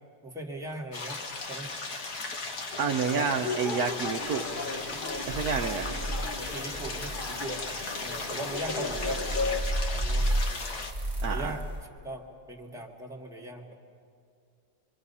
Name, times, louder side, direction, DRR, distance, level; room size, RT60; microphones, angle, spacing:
voice 1, 0.2-1.2 1.5-1.7 3.1-3.3 4.9-5.0 5.5-7.6 8.0-10.9 11.3-11.6 12.0-13.7, right 1 dB, ahead, -1 dB, 1.6 m, -40 dB
sound 1, 0.9-10.9, left 3 dB, 60° left, 2.0 m, -37 dB
sound 2, 2.7-9.6, left 3 dB, 35° left, 1.1 m, -36 dB
voice 2, 2.8-4.5 5.3-6.0 11.2-11.5, right 6 dB, 65° right, 4 dB, 1.1 m, -29 dB
sound 3, 3.9-11.8, right 1 dB, 20° right, 1.7 m, -34 dB
25.5 x 24.5 x 5.6 m, 2.3 s
omnidirectional pair, 1.9 m